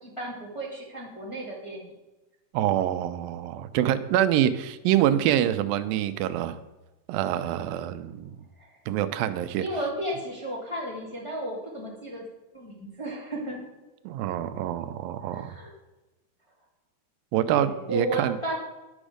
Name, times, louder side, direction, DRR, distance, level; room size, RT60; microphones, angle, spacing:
voice 1, 0.0-1.9 8.6-8.8 9.6-12.2 12.5-13.6 15.2-15.7 17.5-18.6, right 1 dB, 25° left, -5 dB, 0.7 m, -34 dB
voice 2, 2.5-6.6 7.1-8.3 8.9-9.6 14.1-15.5 17.3-18.4, right 11 dB, 85° right, 12 dB, 2.3 m, -26 dB
11.0 x 6.2 x 5.0 m, 1.1 s
omnidirectional pair, 4.0 m